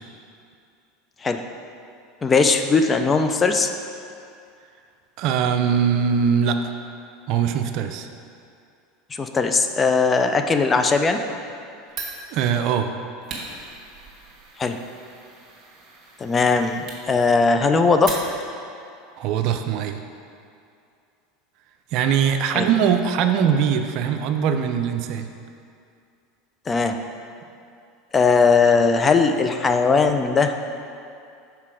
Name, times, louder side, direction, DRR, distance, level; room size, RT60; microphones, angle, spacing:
voice 1, 2.2-3.7 9.1-11.2 14.6-14.8 16.2-18.2 22.5-22.7 26.7-26.9 28.1-30.5, left 4 dB, 25° left, 6 dB, 0.4 m, -19 dB
voice 2, 5.2-6.6 7.3-8.1 12.3-12.9 19.2-20.0 21.9-25.3, right 7 dB, 60° right, 7 dB, 0.4 m, -21 dB
Fire, 11.9-18.7, right 3 dB, 40° right, 1.4 m, -39 dB
5.7 x 4.6 x 4.8 m, 2.5 s
hypercardioid pair, 100°, 0 cm